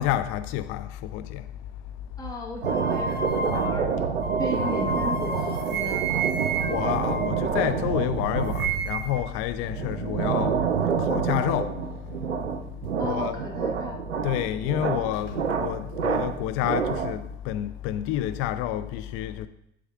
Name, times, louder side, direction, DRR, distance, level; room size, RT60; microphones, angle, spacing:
voice 1, 0.0-1.4 6.7-10.6 11.0-11.8 13.0-13.4 14.2-19.5, left 12 dB, 40° left, 0.4 m, -29 dB
voice 2, 2.2-3.8 4.4-6.0 13.0-14.0, left 1 dB, 10° left, 1.0 m, -35 dB
sound 1, 2.6-7.9 8.2-9.3, right 3 dB, 30° right, 1.0 m, -32 dB
sound 2, 2.6-17.3, right 6 dB, 85° right, 0.6 m, -28 dB
11.0 x 4.6 x 2.4 m
figure-of-eight pair, 70°, 34 cm